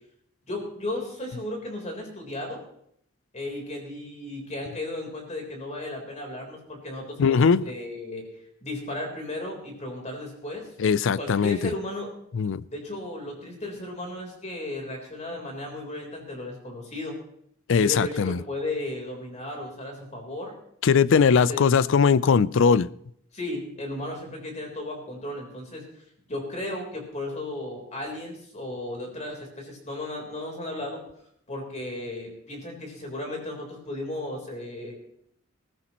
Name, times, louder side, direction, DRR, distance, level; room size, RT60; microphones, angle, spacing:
voice 1, 0.5-2.6 3.3-7.4 7.7-8.2 8.6-10.7 11.2-12.1 12.7-17.2 17.7-20.5 21.1-21.7 23.3-25.9 26.3-31.0 31.5-34.9, left 1 dB, 35° left, 1 dB, 3.8 m, -35 dB
voice 2, 7.2-7.7 10.8-11.7 12.3-12.6 17.7-18.4 20.8-22.9, left 6 dB, 65° left, 19 dB, 0.4 m, -20 dB
20.0 x 15.0 x 3.0 m, 0.69 s
head